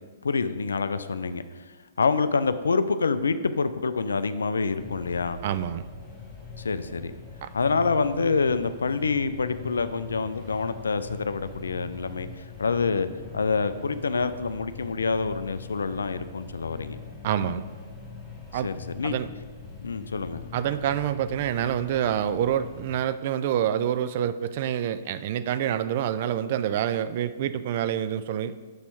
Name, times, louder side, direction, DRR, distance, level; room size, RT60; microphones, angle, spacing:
voice 1, 0.2-1.7 2.0-5.4 6.6-7.1 7.5-13.1 13.3-17.0 18.5-19.1 19.8-20.4, left 4 dB, 70° left, 12 dB, 0.3 m, -27 dB
sound 1, 4.8-22.9, left 5 dB, 5° left, 1.3 m, -43 dB
voice 2, 5.4-5.8 7.4-7.5 17.2-17.6 18.5-18.7 19.0-19.3 20.5-28.5, right 10 dB, 45° right, 13 dB, 0.3 m, -27 dB
6.7 x 4.2 x 4.4 m, 1.3 s
figure-of-eight pair, 115°, 0 cm